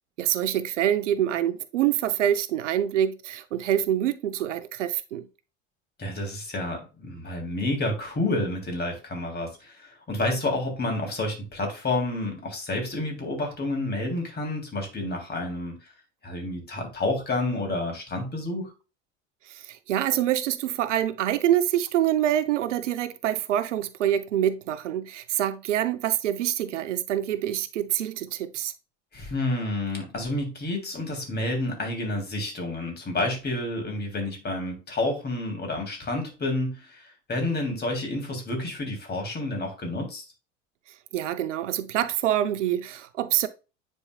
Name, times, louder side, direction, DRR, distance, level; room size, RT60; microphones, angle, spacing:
voice 1, 0.2-5.2 19.5-28.7 41.1-43.5, right 11 dB, 75° right, 0.7 m, -26 dB
voice 2, 6.0-15.9 16.2-18.7 29.1-40.2, left 2 dB, 25° left, 3.0 m, -29 dB
9.8 x 4.5 x 2.3 m
figure-of-eight pair, 70°, 37 cm